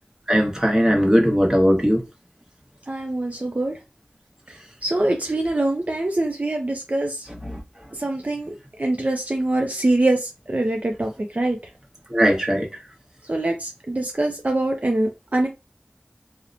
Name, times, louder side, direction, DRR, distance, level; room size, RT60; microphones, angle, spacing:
voice 1, 0.3-2.0 12.1-12.7, equal, 15° right, 1.0 m, -18 dB
voice 2, 2.9-3.7 4.5-7.3 7.9-11.6 13.3-15.5, right 2 dB, 45° right, 0.4 m, -24 dB
2.9 x 2.1 x 2.5 m
wide cardioid pair, 40°, 3 cm